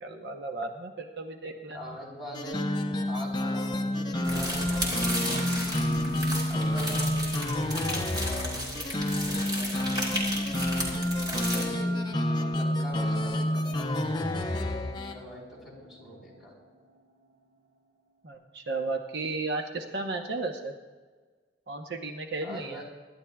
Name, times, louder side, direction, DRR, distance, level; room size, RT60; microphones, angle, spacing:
voice 1, 0.0-2.0 11.5-11.6 18.2-20.7 21.7-22.8, right 3 dB, 70° right, 4 dB, 0.9 m, -34 dB
voice 2, 1.7-2.7 3.1-5.9 6.5-10.5 11.2-12.0 12.3-16.6 22.4-22.8, left 1 dB, ahead, -4 dB, 3.7 m, -44 dB
sound 1, 1.9-17.5, right 1 dB, 90° right, 3.8 m, -44 dB
sound 2, 2.3-15.2, left 1 dB, 25° left, 0.7 m, -29 dB
sound 3, 4.2-11.7, equal, 25° right, 3.1 m, -34 dB
25.5 x 11.5 x 2.3 m, 1.5 s
head